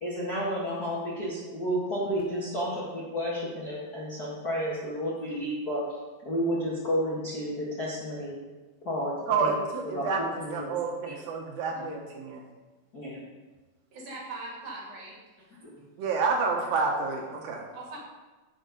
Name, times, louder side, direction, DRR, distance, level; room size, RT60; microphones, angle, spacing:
voice 1, 0.0-5.8 6.2-8.3 8.8-9.6 9.8-10.1 10.4-10.7 11.7-11.9 12.9-13.2, equal, 35° left, -7 dB, 1.6 m, -31 dB
voice 2, 9.3-12.4 16.0-17.6, right 4 dB, 70° right, 0 dB, 2.9 m, -29 dB
voice 3, 13.9-15.2 17.7-18.0, right 2 dB, 55° right, -2 dB, 3.8 m, -40 dB
11.5 x 6.7 x 5.4 m, 1.2 s
omnidirectional pair, 4.3 m